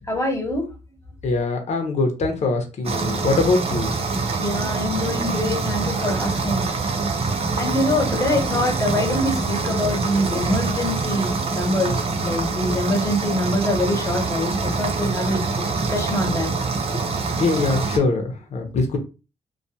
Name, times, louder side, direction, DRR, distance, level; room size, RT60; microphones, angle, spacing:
voice 1, 0.1-0.7 4.4-6.7 7.6-15.5 15.9-16.5, left 1 dB, 20° left, 1 dB, 1.0 m, -24 dB
voice 2, 1.2-3.9 16.9-17.0 17.4-19.0, left 3 dB, 55° left, 4 dB, 0.8 m, -22 dB
sound 1, 2.8-18.0, right 4 dB, 50° right, 0.6 m, -25 dB
2.3 x 2.3 x 2.7 m, 0.31 s
cardioid pair, 90°, 13 cm